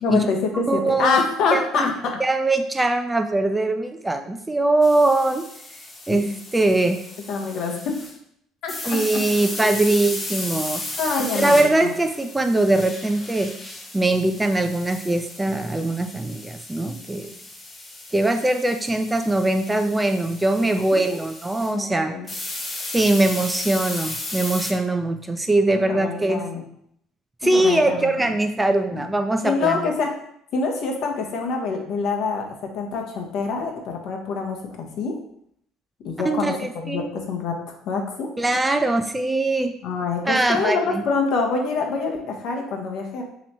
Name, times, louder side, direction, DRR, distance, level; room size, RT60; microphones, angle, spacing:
voice 1, 0.0-2.2 6.1-6.4 7.3-8.0 8.6-9.2 9.6-9.7 11.0-11.6 11.8-11.9 20.9-21.2 21.7-22.3 25.7-26.6 27.5-28.3 28.9-29.1 29.4-30.1 30.5-32.5 32.7-35.2 36.0-38.3 39.8-43.2, left 4 dB, 60° left, 2 dB, 0.8 m, -26 dB
voice 2, 0.7-1.2 1.5-1.9 2.2-5.4 6.1-7.0 8.9-10.8 11.2-13.5 13.9-17.3 18.1-22.1 22.9-26.4 27.4-29.8 36.2-37.1 38.4-39.7 40.2-40.8, right 2 dB, 15° right, 6 dB, 0.4 m, -21 dB
sound 1, 4.8-8.1 8.7-21.8 22.3-24.7, left 2 dB, 20° left, 0.8 m, -35 dB
3.2 x 3.0 x 4.1 m, 0.71 s
hypercardioid pair, 60°, 0 cm